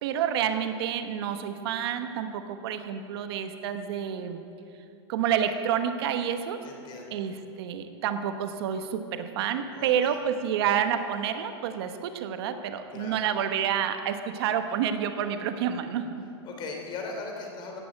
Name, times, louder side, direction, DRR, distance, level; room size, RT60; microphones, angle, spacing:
voice 1, 0.0-4.5 5.1-6.6 7.1-16.3, right 8 dB, 60° right, 8 dB, 1.1 m, -29 dB
voice 2, 6.6-7.2 9.7-10.2 12.9-13.2 16.4-17.8, left 3 dB, 30° left, 2 dB, 3.1 m, -39 dB
16.5 x 8.8 x 8.6 m, 2.5 s
supercardioid pair, 145°, 15 cm